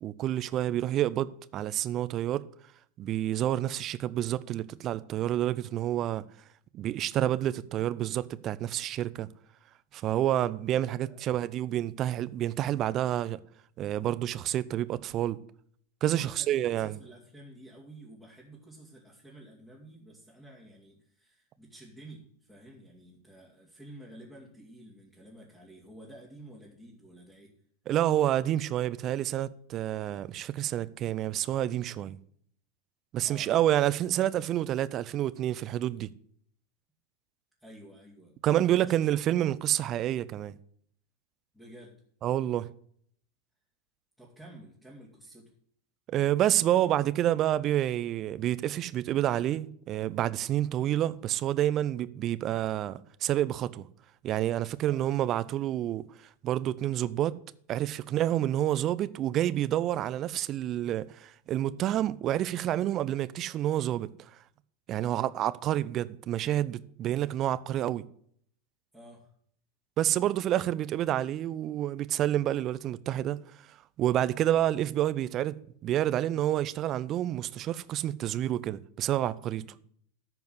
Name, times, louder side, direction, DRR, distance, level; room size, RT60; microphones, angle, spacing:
voice 1, 0.0-2.4 3.0-6.2 6.7-9.3 9.9-13.4 13.8-15.4 16.0-17.0 27.9-32.2 33.1-36.1 38.4-40.6 42.2-42.7 46.1-53.8 54.2-56.0 56.4-57.4 57.7-64.1 64.9-68.0 70.0-73.4 73.7-79.6, right 12 dB, 40° right, 0.6 m, -28 dB
voice 2, 16.1-27.5 33.2-33.5 37.6-39.0 41.5-41.9 44.2-45.5 54.8-55.0 65.0-65.3 68.9-69.3 79.6-79.8, right 1 dB, 5° left, 2.7 m, -51 dB
13.5 x 4.7 x 7.8 m
figure-of-eight pair, 90°, 0 cm